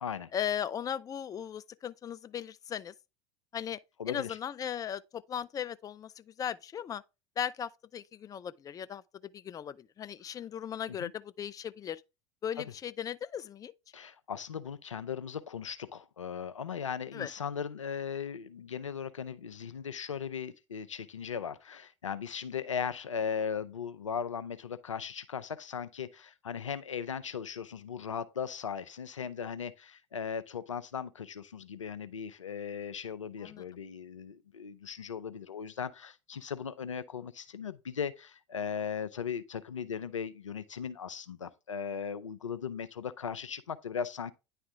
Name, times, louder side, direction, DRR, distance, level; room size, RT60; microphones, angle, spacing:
voice 1, 0.3-2.9 3.5-3.8 4.1-7.0 7.4-12.0 12.4-13.7 17.1-17.3 33.4-33.6, left 9 dB, 20° left, 0.4 m, -37 dB
voice 2, 4.0-4.4 11.0-11.1 12.6-12.7 13.9-44.3, left 7 dB, 90° left, 0.4 m, -38 dB
9.7 x 3.3 x 3.5 m
figure-of-eight pair, 75°, 16 cm